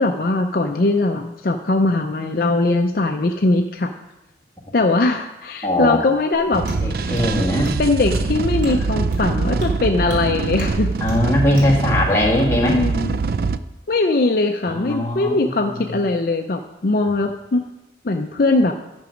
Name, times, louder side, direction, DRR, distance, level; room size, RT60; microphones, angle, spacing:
voice 1, 0.0-3.9 4.7-6.7 7.8-10.9 12.6-13.2 13.9-17.6 18.0-18.7, left 2 dB, 55° left, 4 dB, 0.5 m, -20 dB
voice 2, 5.6-6.0 6.8-7.7 9.2-9.3 11.0-12.8 14.7-16.0, left 1 dB, 15° left, -3 dB, 1.7 m, -20 dB
sound 1, 6.3-6.4 6.7-6.8 7.2-7.3 7.6-7.8 8.1-8.3 8.6-8.8 9.1-9.3 9.6-9.7 10.1-10.2 10.6-10.8 11.1-11.2 11.6-11.7, equal, 90° right, 2.5 m, -30 dB
sound 2, 6.5-13.6, right 4 dB, 55° right, 0.3 m, -23 dB
10.5 x 6.1 x 5.1 m, 0.94 s
head